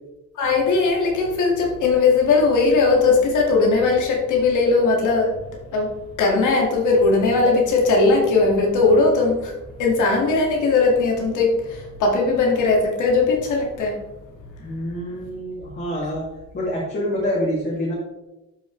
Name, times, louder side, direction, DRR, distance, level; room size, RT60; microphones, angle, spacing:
voice 1, 0.4-5.3 5.7-5.9 6.2-9.5 9.8-14.0, left 3 dB, 80° left, 0 dB, 2.2 m, -19 dB
voice 2, 14.6-16.2 16.5-17.9, equal, 35° left, -5 dB, 2.4 m, -26 dB
11.5 x 5.3 x 3.3 m, 1.0 s
cardioid pair, 90°, 30 cm